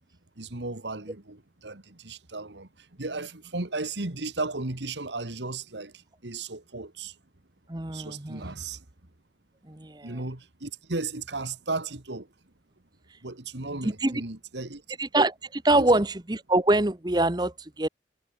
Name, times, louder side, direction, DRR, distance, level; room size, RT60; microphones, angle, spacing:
voice 1, 0.4-2.7 3.0-5.9 6.2-7.1 7.9-8.8 10.0-12.3 13.2-14.8 15.8-15.9, right 3 dB, 75° right, 2.0 m, -35 dB
voice 2, 7.7-8.5 9.7-10.1 13.8-14.2 15.0-17.9, right 2 dB, 25° right, 1.0 m, -25 dB
head